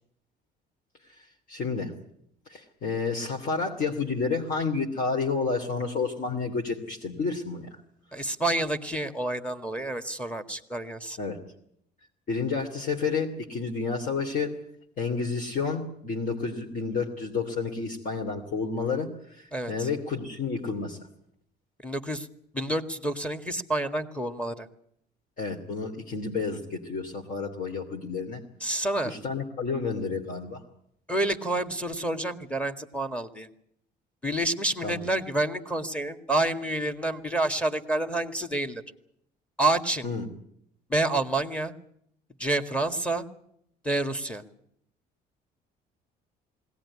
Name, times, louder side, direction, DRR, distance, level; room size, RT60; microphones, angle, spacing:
voice 1, 1.5-1.9 2.5-7.7 11.2-11.4 12.3-14.6 15.0-21.0 25.4-28.4 29.0-30.6 34.8-35.0 40.0-40.3, left 4 dB, 55° left, 0 dB, 2.9 m, -30 dB
voice 2, 8.1-11.2 19.5-19.9 21.8-22.3 22.5-24.7 28.6-29.1 31.1-33.5 34.2-38.8 39.6-40.1 40.9-41.7 42.4-43.3 43.8-44.4, right 2 dB, 5° left, 8 dB, 1.9 m, -28 dB
21.0 x 18.0 x 9.8 m, 0.72 s
cardioid pair, 110°, 17 cm